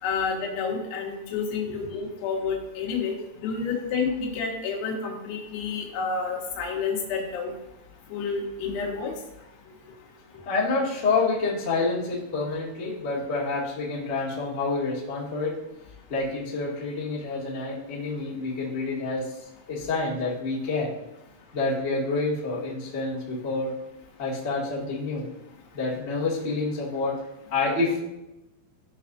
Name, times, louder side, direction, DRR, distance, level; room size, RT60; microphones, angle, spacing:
voice 1, 0.0-7.5 8.1-9.1, left 5 dB, 85° left, -2 dB, 4.5 m, -29 dB
voice 2, 10.4-15.6 16.1-19.3 19.7-20.9 21.5-23.7 24.2-25.3 25.7-27.2 27.5-28.0, left 3 dB, 70° left, -7 dB, 0.6 m, -28 dB
15.5 x 5.7 x 2.7 m, 0.93 s
omnidirectional pair, 5.9 m